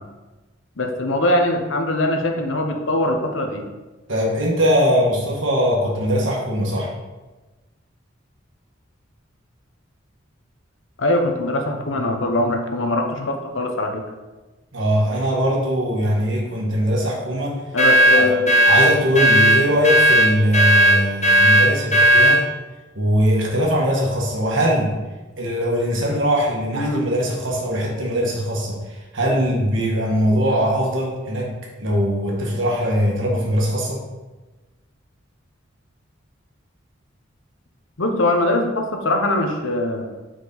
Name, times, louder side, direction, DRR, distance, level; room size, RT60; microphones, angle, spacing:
voice 1, 0.8-3.7 11.0-14.0 17.7-18.5 26.7-27.0 38.0-40.1, left 1 dB, 70° left, 3 dB, 0.9 m, -22 dB
voice 2, 4.1-6.9 14.7-17.6 18.1-18.3 18.6-22.4 22.9-25.0 25.4-31.5 31.8-34.0, equal, 70° right, -2 dB, 1.6 m, -21 dB
sound 1, 17.8-22.4, right 1 dB, 35° left, 1.0 m, -14 dB
6.8 x 4.6 x 4.1 m, 1.2 s
head